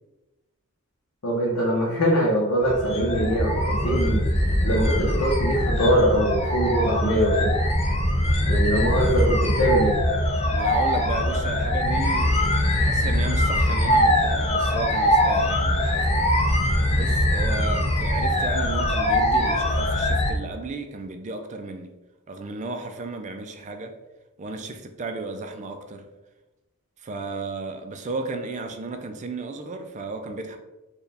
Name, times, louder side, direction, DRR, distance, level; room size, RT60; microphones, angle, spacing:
voice 1, 1.2-7.6 8.5-10.0, right 1 dB, 75° left, -4 dB, 0.8 m, -23 dB
sound 1, 2.6-20.3, left 1 dB, 30° left, 0.5 m, -22 dB
voice 2, 10.5-12.4 12.8-16.3 16.9-21.9 22.3-23.9 24.4-26.1 27.0-30.6, right 3 dB, 35° right, 6 dB, 0.3 m, -34 dB
4.5 x 2.3 x 3.3 m, 1.1 s
head